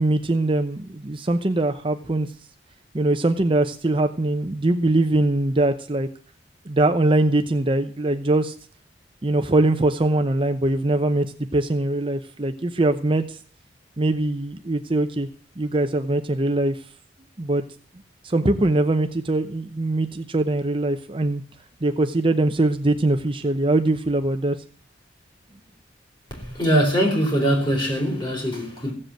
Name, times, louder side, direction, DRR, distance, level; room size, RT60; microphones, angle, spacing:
voice 1, 0.0-2.3 2.9-6.1 6.7-8.5 9.2-11.3 11.5-13.4 14.0-15.3 15.6-16.8 17.4-17.6 18.2-21.4 21.8-24.6, right 2 dB, 30° right, 0.8 m, -22 dB
voice 2, 26.3-28.9, equal, 25° left, 4.5 m, -22 dB
15.5 x 7.8 x 7.8 m
head